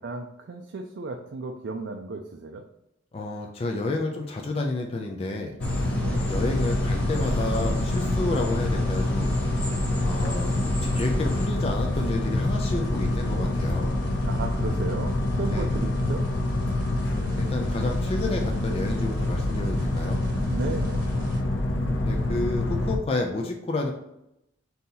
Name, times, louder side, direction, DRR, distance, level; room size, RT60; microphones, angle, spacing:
voice 1, 0.0-2.6 5.9-6.2 14.3-16.3 20.5-21.1, right 3 dB, 60° right, 2 dB, 0.4 m, -34 dB
voice 2, 3.1-5.6 6.3-9.3 10.0-10.5 10.9-13.9 15.5-15.7 17.1-20.2 22.0-23.9, left 2 dB, 30° left, 1 dB, 0.4 m, -30 dB
sound 1, 5.6-23.0, left 1 dB, 80° left, 0.6 m, -26 dB
sound 2, 5.6-11.5, equal, 5° left, 0.8 m, -34 dB
sound 3, 6.3-21.4, equal, 45° right, 0.9 m, -42 dB
4.0 x 2.8 x 3.8 m, 0.84 s
head